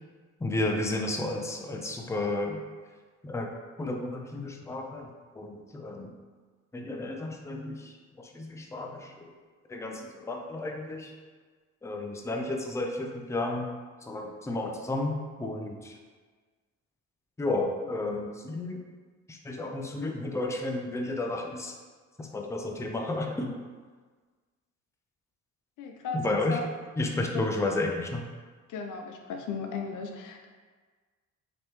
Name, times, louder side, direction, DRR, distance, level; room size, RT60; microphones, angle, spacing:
voice 1, 0.4-2.6 3.2-3.5 3.8-5.1 5.4-6.1 6.7-9.1 9.7-11.1 11.8-13.7 14.0-16.0 17.4-18.8 19.3-21.7 22.2-23.6 26.1-26.6 27.0-28.2, left 2 dB, 10° left, 2 dB, 0.5 m, -32 dB
voice 2, 25.8-26.6 27.1-27.4 28.7-30.5, left 5 dB, 85° left, 3 dB, 0.6 m, -36 dB
5.2 x 3.0 x 3.0 m, 1.4 s
cardioid pair, 90°, 30 cm